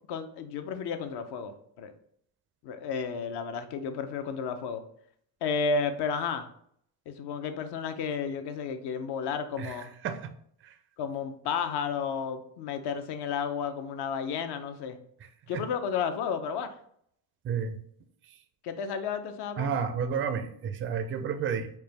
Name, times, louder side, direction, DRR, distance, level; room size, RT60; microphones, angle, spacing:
voice 1, 0.1-1.9 2.6-4.8 5.4-6.5 7.1-9.9 11.0-15.0 15.5-16.7 18.6-19.7, left 6 dB, 60° left, 8 dB, 0.6 m, -32 dB
voice 2, 17.4-17.8 19.6-21.7, right 7 dB, 30° right, 9 dB, 0.4 m, -31 dB
4.4 x 2.2 x 3.3 m, 0.66 s
supercardioid pair, 90°, 46 cm